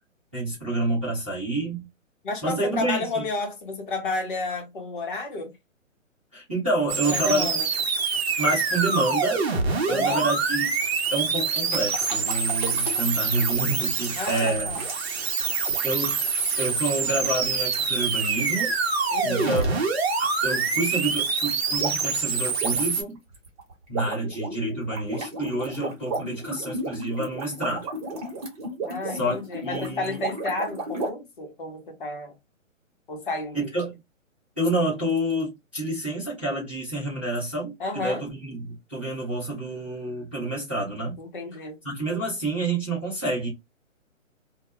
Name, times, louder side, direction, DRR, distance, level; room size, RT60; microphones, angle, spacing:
voice 1, 0.3-1.9 2.4-3.2 6.3-7.5 8.4-9.4 9.9-10.8 11.1-14.7 15.8-18.7 19.2-19.8 20.2-23.2 23.9-27.9 29.0-29.4 29.6-30.2 33.5-34.0 34.6-41.2 41.8-43.5, right 2 dB, 10° right, 0.4 m, -28 dB
voice 2, 2.2-5.5 7.0-7.7 9.9-10.3 14.2-14.8 19.1-19.6 28.9-32.4 33.1-33.6 37.8-38.2 41.2-41.8, left 3 dB, 40° left, 0.8 m, -31 dB
sound 1, 6.9-23.0, right 5 dB, 50° right, 0.7 m, -26 dB
sound 2, 11.5-18.6 19.4-19.7 20.0-20.2 21.8-22.1 22.4-31.1, right 2 dB, 30° right, 1.1 m, -34 dB
2.2 x 2.1 x 2.9 m
hypercardioid pair, 150°, 40 cm